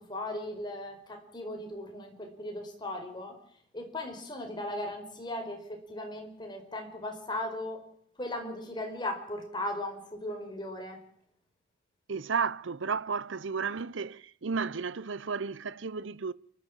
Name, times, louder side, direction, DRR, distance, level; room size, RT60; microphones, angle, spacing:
voice 1, 0.1-3.3 3.7-7.8 8.2-11.0, left 1 dB, 25° left, 4.9 m, -37 dB
voice 2, 12.1-16.3, right 5 dB, 75° right, 0.7 m, -33 dB
29.5 x 12.5 x 7.4 m
head